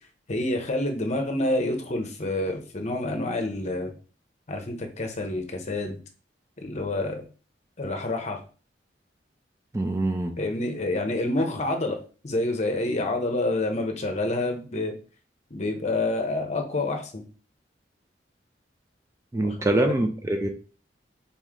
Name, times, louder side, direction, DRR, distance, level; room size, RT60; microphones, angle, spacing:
voice 1, 0.3-3.9 4.5-6.0 6.6-7.3 7.8-8.4 10.4-12.0 12.2-14.9 15.5-17.2 19.4-20.0, left 2 dB, 40° left, 4 dB, 0.8 m, -28 dB
voice 2, 9.7-10.4 19.3-20.5, right 1 dB, 15° right, 5 dB, 0.4 m, -24 dB
4.1 x 3.0 x 3.7 m, 0.37 s
head